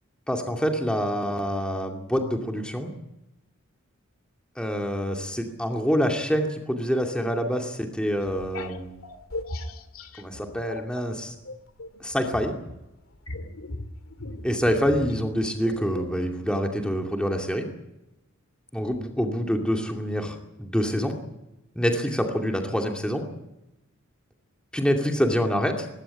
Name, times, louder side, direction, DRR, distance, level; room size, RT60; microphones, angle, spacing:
voice 1, 0.3-2.9 4.6-9.0 10.2-11.4 12.0-12.6 14.4-17.7 18.7-21.2 21.8-23.2 24.7-25.9, equal, 5° left, 2 dB, 2.5 m, -26 dB
sound 1, 8.2-11.1 11.4-16.2, left 2 dB, 80° left, 2.2 m, -38 dB
20.5 x 17.0 x 9.9 m, 0.95 s
head